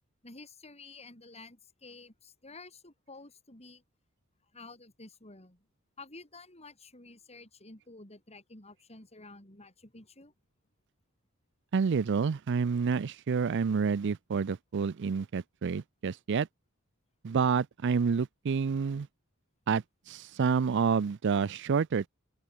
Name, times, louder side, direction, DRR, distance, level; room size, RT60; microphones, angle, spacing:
voice 1, 0.2-3.8 4.5-5.7 6.0-10.3, left 3 dB, 30° left, 6.2 m, -51 dB
voice 2, 11.7-16.5 17.2-19.1 19.7-22.1, right 5 dB, 55° right, 0.4 m, -28 dB
open air
head